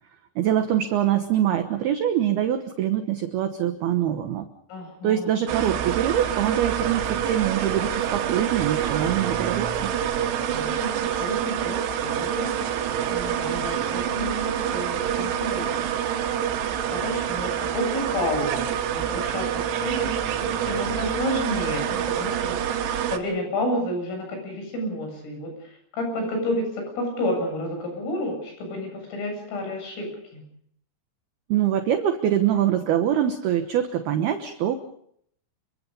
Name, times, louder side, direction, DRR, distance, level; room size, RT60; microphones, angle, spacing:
voice 1, 0.4-4.5 5.0-9.9 31.5-34.8, right 10 dB, 70° right, 7 dB, 2.5 m, -24 dB
voice 2, 4.7-5.3 10.4-12.5 13.1-15.9 16.9-22.9 23.1-30.4, left 1 dB, 70° left, 3 dB, 10.5 m, -30 dB
sound 1, 5.5-23.2, right 9 dB, 85° right, 4.5 m, -27 dB
28.0 x 25.0 x 5.5 m, 0.68 s
omnidirectional pair, 6.0 m